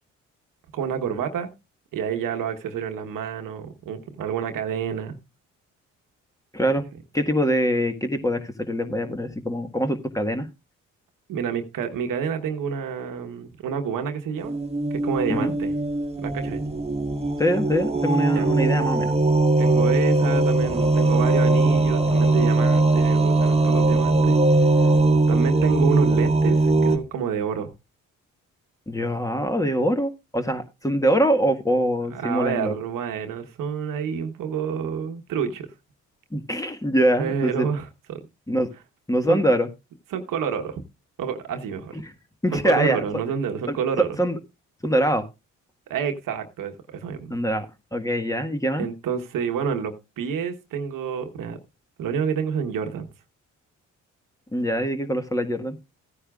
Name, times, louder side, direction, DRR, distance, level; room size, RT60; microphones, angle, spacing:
voice 1, 0.7-1.5 1.9-5.2 11.3-14.6 14.9-15.7 16.2-16.6 18.3-18.5 19.6-24.4 24.8-24.9 25.3-27.7 32.1-35.7 37.2-38.2 39.3-39.4 40.1-40.8 41.2-42.0 42.5-44.1 45.9-47.3 48.8-51.6 52.0-53.1, right 7 dB, 75° right, 1.3 m, -28 dB
voice 2, 7.1-10.5 15.3-15.5 17.4-19.1 28.9-32.7 36.3-37.7 38.5-38.7 39.1-39.7 41.9-42.0 42.4-43.0 43.7-43.8 44.2-44.4 44.8-45.2 47.3-48.9 54.5-55.8, equal, 10° left, 1.6 m, -23 dB
sound 1, 14.4-27.0, right 2 dB, 20° right, 1.7 m, -20 dB
15.0 x 9.8 x 2.4 m
supercardioid pair, 55°, 33 cm